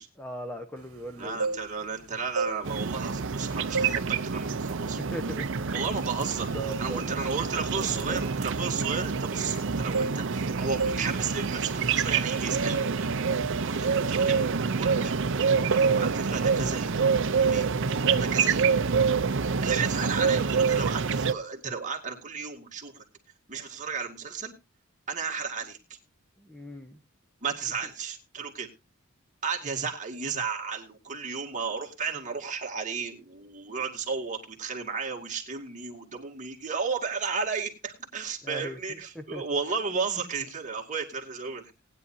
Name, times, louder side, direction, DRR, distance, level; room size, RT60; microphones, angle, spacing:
voice 1, 0.2-1.4 5.1-5.7 6.5-7.1 7.8-8.2 26.4-27.0 38.4-38.8 39.1-39.4, right 1 dB, 5° left, 3 dB, 1.1 m, -38 dB
voice 2, 1.2-5.0 5.7-6.5 6.8-14.4 14.8-15.1 15.7-17.7 18.1-18.8 19.6-23.0 23.5-24.5 25.1-26.0 27.4-28.7 29.4-41.7, right 5 dB, 35° right, 1 dB, 2.2 m, -33 dB
sound 1, 1.2-1.9 2.3-3.4 3.7-4.1 4.5-4.7 5.3-5.5 5.8-9.6 9.9-10.5 10.8-11.1 11.4-11.6, right 3 dB, 80° right, 1.3 m, -33 dB
sound 2, 2.6-21.3, right 5 dB, 60° right, 0.6 m, -27 dB
19.0 x 9.9 x 2.7 m, 0.25 s
head